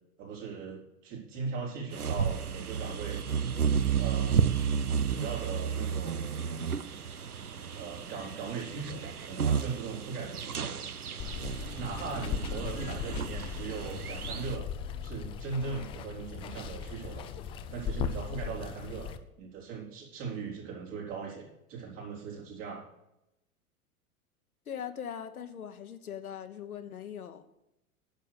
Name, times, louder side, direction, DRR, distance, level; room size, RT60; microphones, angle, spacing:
voice 1, 0.2-3.2 4.0-4.6 5.1-6.7 7.7-10.8 11.7-14.7 15.0-17.3 17.7-19.1 19.4-22.8, right 5 dB, 55° right, -1 dB, 4.2 m, -39 dB
sound 1, 1.9-14.6, right 7 dB, 90° right, 0.7 m, -32 dB
Water, 11.2-19.2, left 7 dB, 15° left, 0.3 m, -38 dB
voice 2, 24.7-27.4, left 8 dB, 75° left, 9 dB, 1.2 m, -40 dB
10.0 x 6.8 x 6.6 m, 0.87 s
figure-of-eight pair, 90°, 43 cm